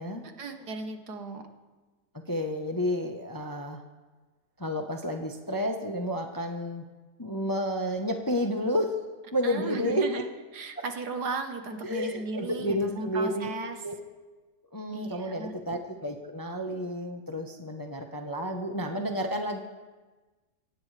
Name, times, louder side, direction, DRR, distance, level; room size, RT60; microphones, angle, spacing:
voice 1, 0.4-1.4 9.4-10.3 10.5-13.8 14.9-15.5, right 3 dB, 70° right, 6 dB, 1.8 m, -35 dB
voice 2, 2.3-3.8 4.6-6.8 7.2-9.0 9.3-10.2 10.8-10.9 11.8-13.5 13.8-14.0 14.7-19.6, equal, 15° left, 3 dB, 0.8 m, -31 dB
23.0 x 17.5 x 3.4 m, 1.3 s
omnidirectional pair, 1.8 m